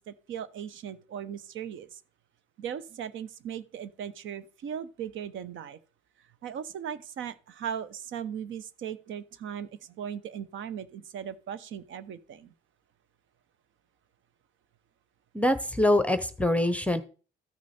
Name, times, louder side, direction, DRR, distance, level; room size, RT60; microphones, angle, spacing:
voice 1, 0.1-2.0 2.6-5.8 6.4-12.5, right 8 dB, 75° right, 0.9 m, -38 dB
voice 2, 15.3-17.0, left 1 dB, 5° left, 0.8 m, -24 dB
13.5 x 6.3 x 4.2 m
cardioid pair, 90°, 20 cm